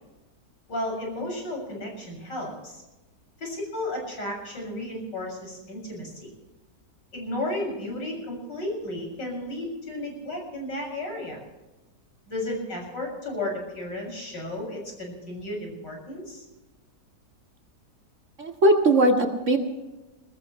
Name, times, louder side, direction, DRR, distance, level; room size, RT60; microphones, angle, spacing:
voice 1, 0.7-2.8 3.4-6.3 7.1-11.4 12.3-16.4, left 1 dB, 85° left, 0 dB, 7.6 m, -33 dB
voice 2, 18.4-19.6, right 1 dB, 45° right, 2 dB, 2.2 m, -20 dB
21.5 x 20.5 x 3.2 m, 1.1 s
omnidirectional pair, 1.9 m